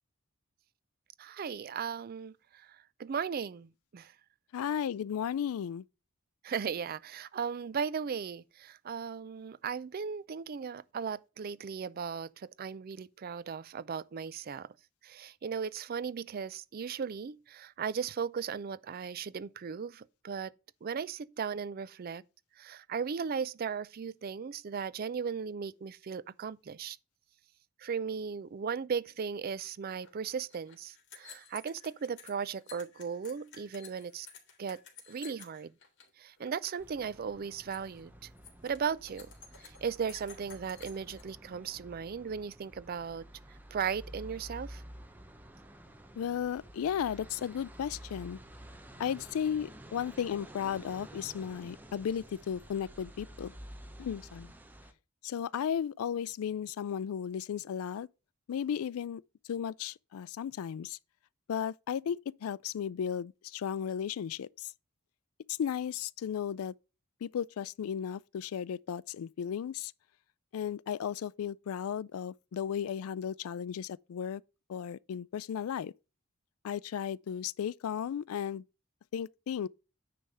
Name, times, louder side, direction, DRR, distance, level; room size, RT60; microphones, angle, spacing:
voice 1, 1.2-4.1 6.4-14.7 15.0-20.5 20.8-22.2 22.6-27.0 27.8-34.3 34.6-34.8 35.1-35.7 36.2-38.1 38.6-39.3 39.6-43.3 43.7-44.8, right 6 dB, 45° right, 0.4 m, -37 dB
voice 2, 4.5-5.8 46.2-48.4 49.0-53.5 54.0-54.5 55.2-58.1 58.5-59.2 59.5-61.0 61.5-64.7 65.5-66.7 67.2-69.9 70.5-74.4 74.7-75.9 76.6-78.6 79.1-79.7, left 8 dB, 90° left, 0.3 m, -35 dB
sound 1, 30.0-30.1 30.4-36.1 36.4-36.8 37.1-37.4 37.7-38.0 38.4-41.2, left 6 dB, 60° left, 2.5 m, -53 dB
sound 2, 36.8-54.9, right 1 dB, 10° right, 0.8 m, -51 dB
9.7 x 3.4 x 6.6 m
head